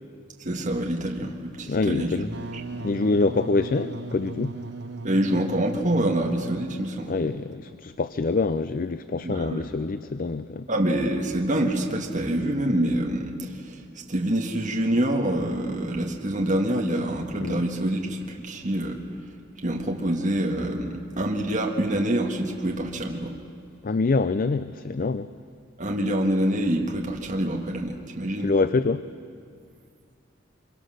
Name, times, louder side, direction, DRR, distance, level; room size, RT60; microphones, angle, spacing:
voice 1, 0.4-2.1 5.0-7.1 9.2-9.7 10.7-13.8 14.1-19.0 19.6-23.3 25.8-28.5, right 1 dB, 40° right, 0 dB, 1.7 m, -26 dB
voice 2, 1.7-2.3 2.8-4.6 7.1-10.7 17.4-17.6 23.8-25.3 28.4-29.1, left 3 dB, 45° left, 13 dB, 0.5 m, -25 dB
Wind instrument woodwind instrument, 2.2-6.8, right 2 dB, 55° right, 0.8 m, -37 dB
26.0 x 23.5 x 6.4 m, 2.2 s
head